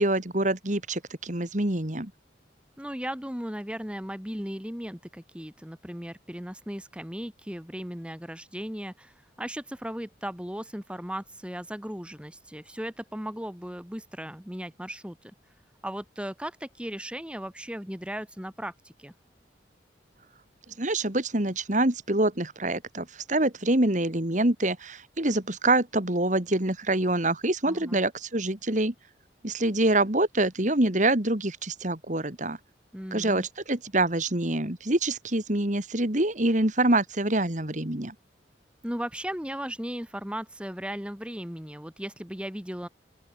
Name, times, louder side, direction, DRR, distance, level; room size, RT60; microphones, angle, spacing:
voice 1, 0.0-2.1 20.8-28.9 29.4-32.6 33.1-38.1, right 2 dB, 40° right, 2.5 m, -26 dB
voice 2, 2.8-15.3 15.8-19.1 27.6-28.0 32.9-33.4 38.8-42.9, equal, 5° right, 2.2 m, -36 dB
open air
head